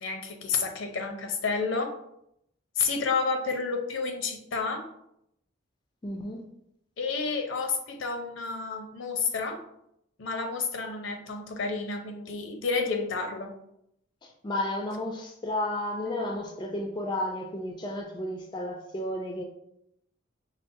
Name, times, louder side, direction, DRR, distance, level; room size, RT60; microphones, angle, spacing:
voice 1, 0.0-1.9 2.8-4.9 7.0-9.6 10.2-13.5, left 4 dB, 70° left, 4 dB, 0.6 m, -30 dB
voice 2, 6.0-6.4 14.4-19.4, left 1 dB, 20° left, 2 dB, 0.3 m, -32 dB
5.4 x 2.1 x 2.6 m, 0.77 s
head